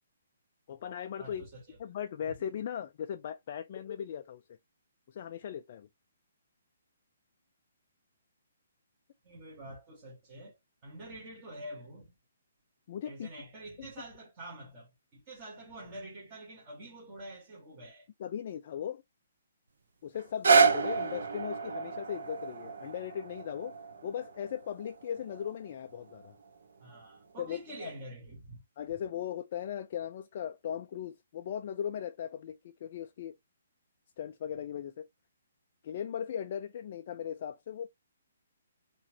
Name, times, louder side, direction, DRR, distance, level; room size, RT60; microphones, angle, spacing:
voice 1, 0.7-1.5 1.8-4.4 5.1-5.9 12.9-13.3 13.8-13.9 18.2-19.0 20.0-23.7 24.0-26.3 27.4-27.9 28.8-33.4 34.2-35.1 35.8-37.9, left 9 dB, 30° left, 0.3 m, -38 dB
voice 2, 1.2-1.8 9.2-10.6 10.8-12.1 13.0-18.1 26.8-28.6, right 1 dB, 20° right, 1.5 m, -47 dB
sound 1, 20.2-26.3 26.9-27.0, right 5 dB, 65° right, 0.9 m, -29 dB
4.1 x 3.0 x 2.8 m
hypercardioid pair, 180°, 0 cm